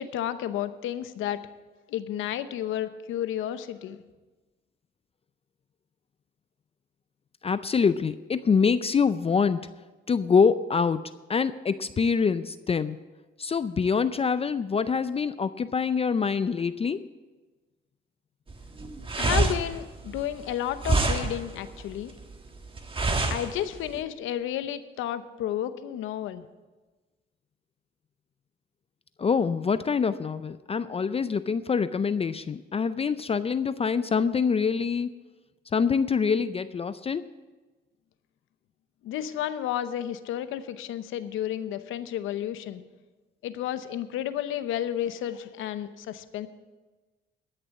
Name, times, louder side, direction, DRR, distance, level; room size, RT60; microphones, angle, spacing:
voice 1, 0.0-1.4 1.9-4.0 19.2-22.1 23.3-26.5 39.0-42.8 43.4-46.5, left 11 dB, 85° left, 12 dB, 0.8 m, -32 dB
voice 2, 7.4-9.7 10.1-11.0 11.3-13.0 13.4-17.0 29.2-35.1 35.7-37.3, left 5 dB, 30° left, 13 dB, 0.5 m, -25 dB
sound 1, 18.5-24.0, right 3 dB, 25° right, 1.5 m, -27 dB
13.0 x 6.7 x 8.3 m, 1.2 s
cardioid pair, 90°, 20 cm